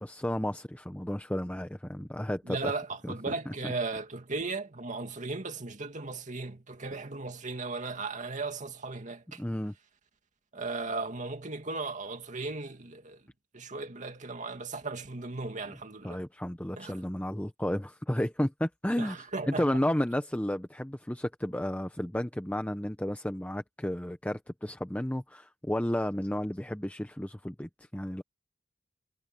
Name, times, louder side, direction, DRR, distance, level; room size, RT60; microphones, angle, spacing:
voice 1, 0.0-2.7 3.0-3.3 9.4-9.7 16.0-28.2, left 1 dB, 10° left, 0.8 m, -32 dB
voice 2, 2.4-9.4 10.5-13.2 13.5-16.2 16.7-17.0 19.0-19.8, right 3 dB, 40° right, 2.3 m, -36 dB
head